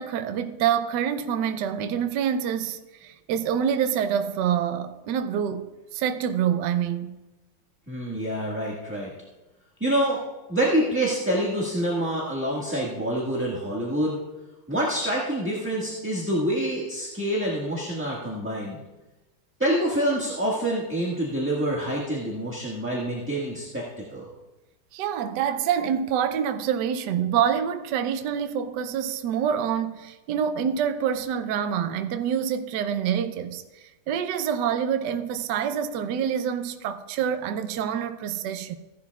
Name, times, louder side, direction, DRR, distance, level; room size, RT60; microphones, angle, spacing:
voice 1, 0.0-5.7 5.9-7.1 24.9-33.6 34.1-38.7, right 8 dB, 70° right, 1.2 m, -26 dB
voice 2, 7.9-9.1 9.8-10.2 10.5-14.2 14.7-18.8 19.6-23.8 24.1-24.2, right 1 dB, 5° right, 1.3 m, -26 dB
16.0 x 11.5 x 2.3 m
omnidirectional pair, 2.2 m